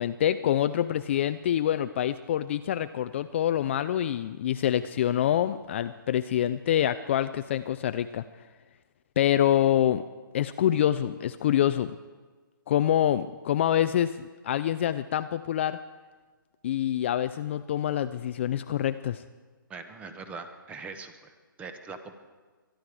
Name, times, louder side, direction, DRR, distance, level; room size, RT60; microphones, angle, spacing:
voice 1, 0.0-8.2 9.2-10.0 10.3-11.9 12.7-15.8 16.6-19.2, left 11 dB, 35° left, 11 dB, 0.4 m, -26 dB
voice 2, 19.7-21.3 21.6-22.2, right 4 dB, 10° right, 8 dB, 0.9 m, -41 dB
23.5 x 11.5 x 4.8 m, 1.4 s
hypercardioid pair, 150°, 12 cm